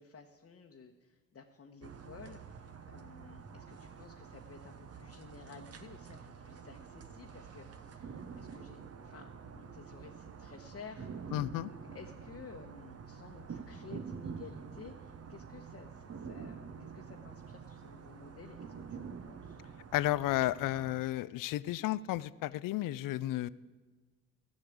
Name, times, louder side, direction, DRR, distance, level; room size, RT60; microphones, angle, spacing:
voice 1, 0.0-19.6, left 5 dB, 45° left, 2 dB, 1.0 m, -53 dB
sound 1, 1.8-21.0, right 6 dB, 50° right, 1.0 m, -47 dB
voice 2, 11.3-11.7 19.9-23.5, left 15 dB, 75° left, 19 dB, 0.5 m, -32 dB
13.5 x 6.5 x 8.5 m, 1.3 s
supercardioid pair, 60°, 33 cm